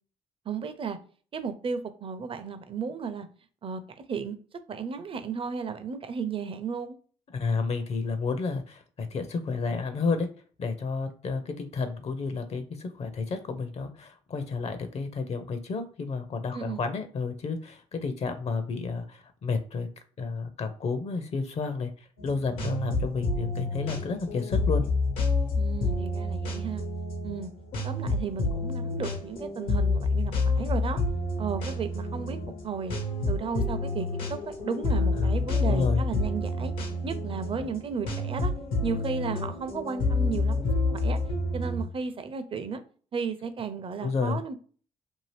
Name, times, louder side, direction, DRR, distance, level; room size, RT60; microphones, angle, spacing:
voice 1, 0.5-1.0 1.3-3.3 3.6-4.4 4.7-7.0 16.5-16.8 25.5-26.8 27.2-27.5 27.8-31.0 31.4-32.4 32.6-33.0 33.3-36.7 37.0-38.5 38.8-40.7 41.0-41.2 41.5-42.8 43.1-44.5, right 5 dB, 40° right, 10 dB, 0.6 m, -34 dB
voice 2, 7.3-10.3 10.6-19.9 20.2-21.9 22.2-24.8 35.1-35.3 35.6-36.0 44.0-44.4, left 4 dB, 50° left, 9 dB, 0.6 m, -31 dB
sound 1, 22.2-41.8, left 3 dB, 85° left, 1.0 m, -29 dB
2.7 x 2.5 x 3.2 m, 0.43 s
supercardioid pair, 60°, 14 cm